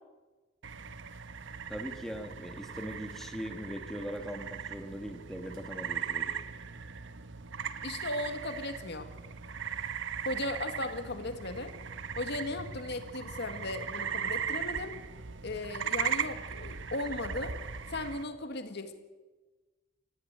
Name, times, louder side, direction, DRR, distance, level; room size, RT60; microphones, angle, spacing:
sound 1, 0.6-18.2, right 7 dB, 65° right, 1.2 m, -38 dB
voice 1, 1.7-6.3, equal, ahead, 3 dB, 2.4 m, -40 dB
voice 2, 7.8-9.1 10.3-11.7 12.2-14.9 15.4-17.5 17.9-18.9, left 2 dB, 55° left, 7 dB, 1.9 m, -36 dB
27.0 x 16.5 x 9.0 m, 1.3 s
head